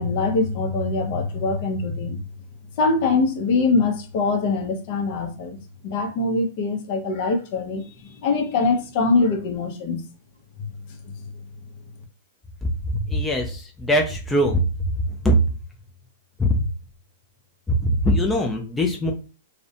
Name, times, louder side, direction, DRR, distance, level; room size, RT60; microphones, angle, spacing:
voice 1, 0.0-2.2 2.8-7.9 8.2-10.0 10.6-10.7, left 3 dB, 50° left, 0.7 m, -23 dB
voice 2, 12.9-14.6 15.2-15.3 16.4-16.5 17.7-19.1, equal, 10° left, 0.4 m, -21 dB
2.5 x 2.1 x 2.6 m
hypercardioid pair, 140°, 0 cm